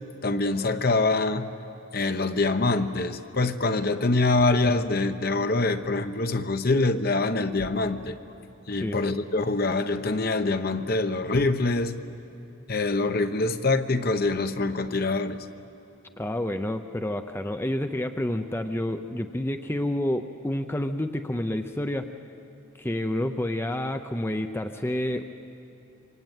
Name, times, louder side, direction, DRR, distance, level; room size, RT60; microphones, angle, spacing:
voice 1, 0.2-1.5 1.9-8.2 8.7-11.9 12.7-15.4, left 3 dB, 50° left, 9 dB, 0.9 m, -25 dB
voice 2, 16.2-22.1 22.8-25.2, left 1 dB, 10° left, 7 dB, 0.6 m, -29 dB
26.5 x 24.0 x 9.1 m, 2.8 s
head